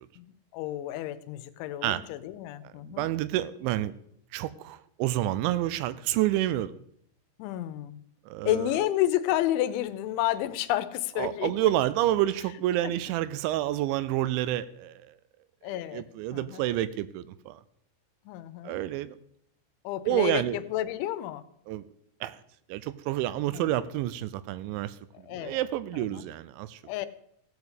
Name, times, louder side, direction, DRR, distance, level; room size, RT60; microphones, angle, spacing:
voice 1, 0.2-3.1 7.4-8.0 8.5-11.7 12.8-12.9 15.6-16.0 16.3-16.6 18.3-18.8 19.8-21.4 23.5-23.7 25.1-25.6 25.9-26.2 26.8-27.1, left 13 dB, 80° left, 13 dB, 3.1 m, -31 dB
voice 2, 2.9-3.9 4.3-6.7 8.3-8.7 11.2-15.0 15.9-17.6 18.6-19.2 20.1-20.6 21.7-21.9 22.2-22.4 22.7-26.8, right 13 dB, 80° right, 16 dB, 2.9 m, -29 dB
15.5 x 7.1 x 8.2 m, 0.70 s
omnidirectional pair, 5.4 m